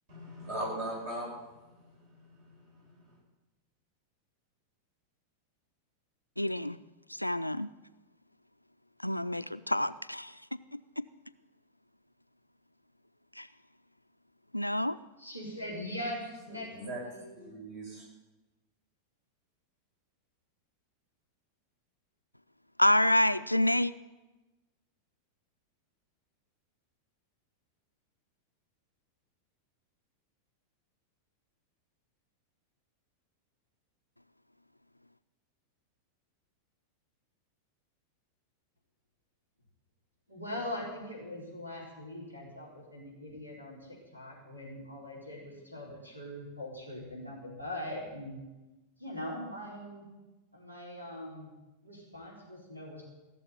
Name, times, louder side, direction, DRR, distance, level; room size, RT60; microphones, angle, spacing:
voice 1, 0.1-3.2 16.5-18.1, right 1 dB, 50° right, 6.5 m, -41 dB
voice 2, 6.4-6.8 7.1-7.7 9.0-10.6 13.4-13.5 14.5-15.0 22.8-23.9, left 1 dB, 90° left, 0.4 m, -28 dB
voice 3, 15.2-16.7 17.0-17.4 40.3-48.4 49.0-50.1 50.5-51.5 51.8-53.1, left 1 dB, 85° right, 4.3 m, -41 dB
16.5 x 7.0 x 9.3 m
figure-of-eight pair, 90°, 0 cm